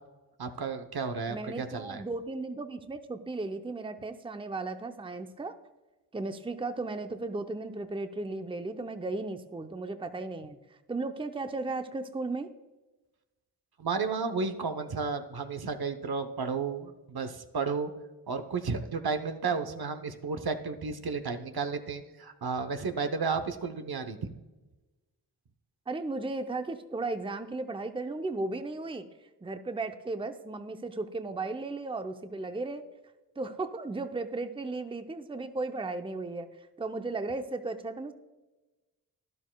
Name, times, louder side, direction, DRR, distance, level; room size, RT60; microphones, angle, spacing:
voice 1, 0.4-2.0 13.8-17.9 18.3-24.3, right 5 dB, 65° right, 8 dB, 0.9 m, -32 dB
voice 2, 1.3-5.5 6.1-10.6 10.9-12.5 19.6-19.9 25.9-29.1 29.4-32.8 33.4-38.1, right 3 dB, 15° right, 8 dB, 0.7 m, -35 dB
12.0 x 11.0 x 2.3 m, 1.1 s
cardioid pair, 45°, 41 cm